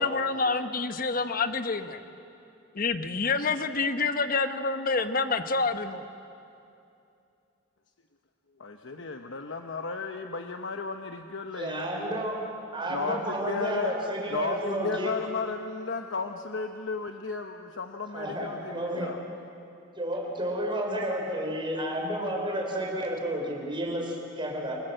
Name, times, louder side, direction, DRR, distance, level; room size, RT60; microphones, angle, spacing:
voice 1, 0.0-2.0 2.7-6.0, left 4 dB, 50° left, 9 dB, 1.1 m, -27 dB
voice 2, 8.6-12.2 12.9-13.9 14.3-19.2, left 4 dB, 75° left, 5 dB, 0.9 m, -34 dB
voice 3, 11.5-12.4 12.7-15.1 18.1-19.1 20.0-24.8, right 1 dB, 25° right, 0 dB, 4.8 m, -31 dB
28.5 x 19.5 x 7.8 m, 2.6 s
head